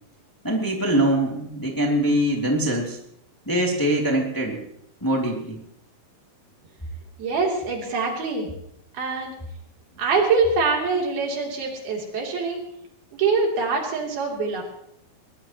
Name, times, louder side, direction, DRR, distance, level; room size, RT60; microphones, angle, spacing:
voice 1, 0.4-3.0 3.5-4.6 5.0-5.6, right 1 dB, 5° left, -1 dB, 2.0 m, -23 dB
voice 2, 7.2-8.5 8.9-9.3 10.0-12.6 13.2-14.6, right 4 dB, 80° right, 0 dB, 5.0 m, -24 dB
22.0 x 19.0 x 3.0 m, 0.71 s
omnidirectional pair, 4.2 m